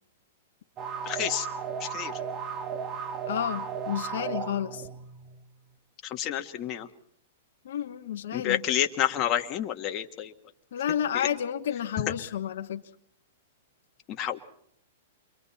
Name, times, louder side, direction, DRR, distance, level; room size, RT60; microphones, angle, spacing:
sound 1, 0.8-5.4, right 6 dB, 30° right, 1.4 m, -35 dB
voice 1, 1.1-1.5 1.8-2.1 6.0-6.9 8.3-10.3 11.1-11.3 14.1-14.4, left 11 dB, 35° left, 4 dB, 1.6 m, -29 dB
voice 2, 3.3-4.9 7.6-8.6 10.7-12.8, left 9 dB, 70° left, 6 dB, 1.1 m, -31 dB
29.5 x 24.0 x 4.3 m, 0.67 s
hypercardioid pair, 130°, 0 cm